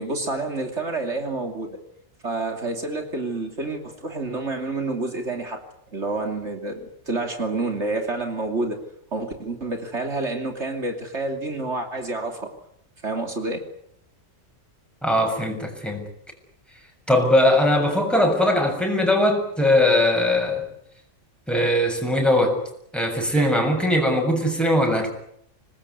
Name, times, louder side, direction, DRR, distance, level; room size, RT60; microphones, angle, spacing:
voice 1, 0.0-1.8 2.2-5.6 5.9-8.8 9.1-12.5 13.0-13.6, right 2 dB, 60° right, 5 dB, 3.2 m, -28 dB
voice 2, 15.0-16.1 17.1-20.7 21.5-22.6 22.9-25.1, left 1 dB, ahead, 2 dB, 7.1 m, -20 dB
26.0 x 20.5 x 9.7 m, 0.71 s
omnidirectional pair, 1.3 m